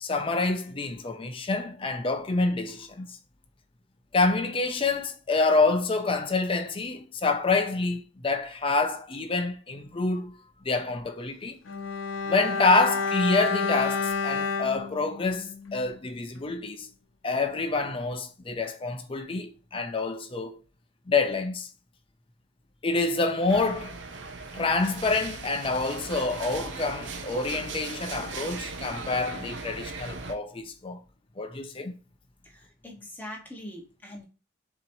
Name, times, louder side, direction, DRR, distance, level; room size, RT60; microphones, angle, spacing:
voice 1, 0.0-3.2 4.1-10.4 10.6-11.6 12.3-16.9 17.2-20.6 21.1-21.7 22.8-23.9 24.5-31.0 31.4-31.9, left 3 dB, 25° left, 0.5 m, -27 dB
Bowed string instrument, 11.6-16.1 16.4-16.5, left 4 dB, 80° left, 0.6 m, -30 dB
sound 1, 23.5-30.3, right 4 dB, 65° right, 0.6 m, -38 dB
voice 2, 32.4-34.3, left 1 dB, 10° left, 1.0 m, -42 dB
7.0 x 2.9 x 2.6 m
head